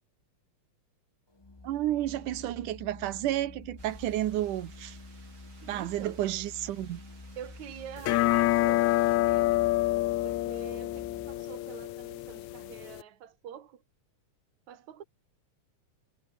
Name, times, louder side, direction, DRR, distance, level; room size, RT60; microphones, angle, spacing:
Organ, 1.3-11.6, left 2 dB, 35° left, 0.4 m, -48 dB
voice 1, 1.6-5.0 5.6-7.0, right 13 dB, 85° right, 2.7 m, -31 dB
sound 1, 3.8-9.2, right 4 dB, 40° right, 4.6 m, -59 dB
voice 2, 5.7-6.2 7.4-9.6 10.2-13.8 14.7-15.0, right 9 dB, 65° right, 3.3 m, -46 dB
sound 2, 8.0-13.0, left 17 dB, 75° left, 1.9 m, -27 dB
omnidirectional pair, 3.6 m